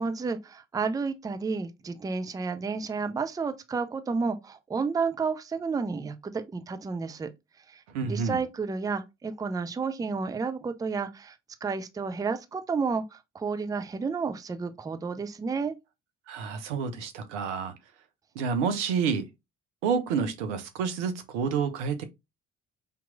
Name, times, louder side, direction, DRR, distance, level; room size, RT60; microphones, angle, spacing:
voice 1, 0.0-7.3 7.7-11.4 11.6-15.8, right 4 dB, 10° right, 0.4 m, -31 dB
voice 2, 7.9-8.4 16.3-17.7 18.4-19.3 19.8-22.0, right 6 dB, 75° right, 0.6 m, -29 dB
5.1 x 2.9 x 2.3 m
figure-of-eight pair, 50°, 36 cm